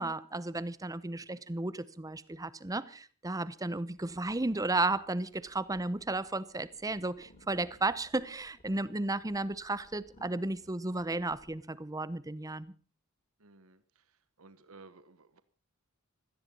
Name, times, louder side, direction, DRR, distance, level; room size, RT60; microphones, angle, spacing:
voice 1, 0.0-12.7, right 2 dB, 15° right, 0.8 m, -34 dB
sound 1, 3.9-11.6, left 1 dB, 35° left, 3.4 m, -61 dB
voice 2, 13.4-15.4, right 3 dB, 70° right, 1.3 m, -57 dB
17.5 x 14.0 x 5.4 m
head